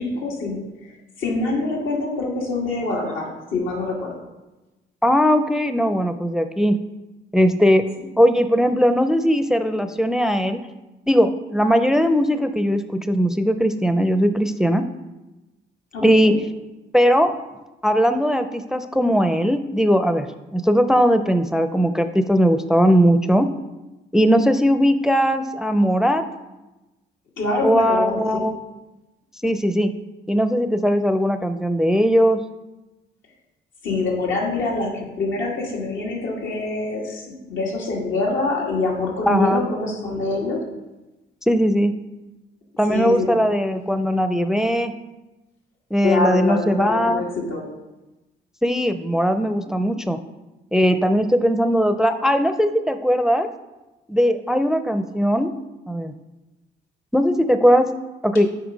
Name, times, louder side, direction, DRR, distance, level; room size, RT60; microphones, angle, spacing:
voice 1, 0.0-4.1 15.9-16.3 27.4-28.4 33.8-40.6 42.9-43.4 46.0-47.7, left 3 dB, 85° left, -2 dB, 2.3 m, -25 dB
voice 2, 5.0-6.8 7.3-7.9 8.2-10.6 11.1-14.9 16.0-16.3 16.9-17.3 17.8-20.3 20.5-23.5 24.1-26.2 27.6-28.5 29.4-29.9 30.3-32.4 39.3-39.6 41.5-41.9 42.8-44.9 45.9-47.2 48.6-50.2 50.7-53.5 54.1-55.5 55.9-56.1 57.1-57.9 58.2-58.5, equal, 5° right, 9 dB, 0.4 m, -19 dB
8.0 x 4.9 x 5.1 m, 1.1 s
cardioid pair, 90°, 20 cm